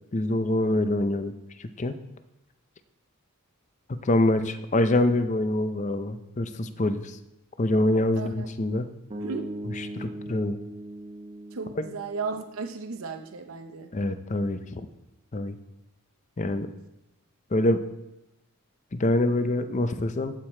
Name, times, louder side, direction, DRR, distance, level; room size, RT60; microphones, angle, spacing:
voice 1, 0.1-1.3 1.6-1.9 3.9-7.2 7.6-8.8 10.0-10.6 11.8-11.9 13.9-14.9 15.3-15.6 16.4-16.7 17.5-17.8 18.9-20.3, left 1 dB, 35° left, 10 dB, 0.5 m, -25 dB
voice 2, 8.2-8.5 9.2-9.5 11.5-13.9, right 4 dB, 70° right, 6 dB, 0.6 m, -35 dB
sound 1, 9.1-13.3, right 1 dB, 30° right, 1.0 m, -40 dB
14.5 x 4.8 x 4.3 m, 0.94 s
head